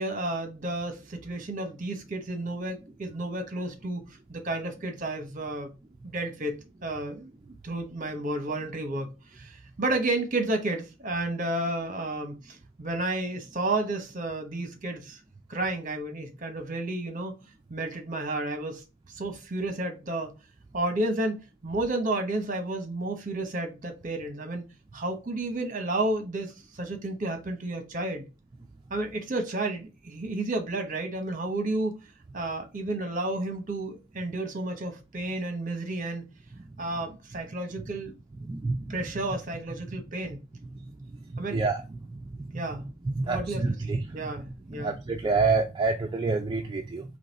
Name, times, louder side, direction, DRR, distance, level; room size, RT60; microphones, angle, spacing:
voice 1, 0.0-4.0 4.3-5.7 6.0-15.2 15.5-17.3 17.7-18.8 19.2-20.3 20.7-24.6 24.9-28.3 28.9-32.0 32.3-36.3 36.8-38.1 38.9-40.4 41.4-41.6 42.5-42.9 43.2-43.7 44.1-45.0, right 2 dB, 40° right, 0.9 m, -31 dB
voice 2, 38.5-38.9 41.5-41.8 43.0-44.0 44.7-47.0, right 3 dB, 20° right, 0.3 m, -27 dB
3.9 x 3.0 x 4.0 m
head